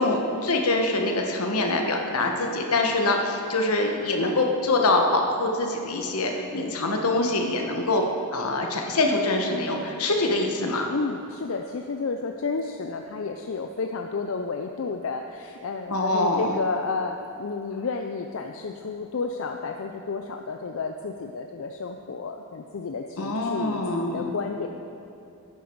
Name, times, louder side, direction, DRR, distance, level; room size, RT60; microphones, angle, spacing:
voice 1, 0.0-8.1 8.3-10.9 15.9-16.6 23.2-24.3, left 2 dB, 80° left, 2 dB, 1.2 m, -24 dB
voice 2, 10.9-24.7, left 4 dB, 65° left, 4 dB, 0.5 m, -31 dB
11.5 x 9.1 x 4.6 m, 2.8 s
head